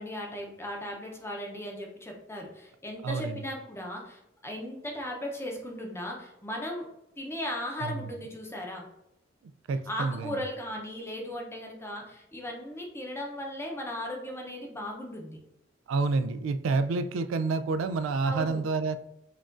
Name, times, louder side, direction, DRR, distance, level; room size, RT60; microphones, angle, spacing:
voice 1, 0.0-6.9 7.2-8.9 9.9-15.4 18.2-18.6, left 1 dB, 15° left, 0 dB, 0.7 m, -37 dB
voice 2, 3.0-3.4 7.8-8.1 9.7-10.4 15.9-19.0, right 4 dB, 85° right, 12 dB, 0.3 m, -28 dB
5.7 x 2.4 x 2.5 m, 0.87 s
head